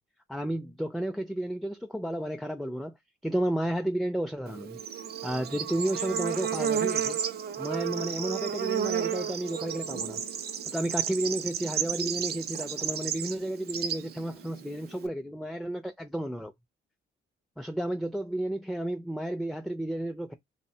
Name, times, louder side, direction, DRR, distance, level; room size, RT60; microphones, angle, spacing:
voice 1, 0.3-2.9 3.2-4.8 5.2-7.2 7.6-10.2 10.7-16.5 17.6-20.3, right 1 dB, ahead, 0.3 m, -32 dB
Bird / Insect, 4.5-15.1, right 8 dB, 55° right, 0.5 m, -32 dB
3.2 x 2.1 x 2.7 m
cardioid pair, 90°, 20 cm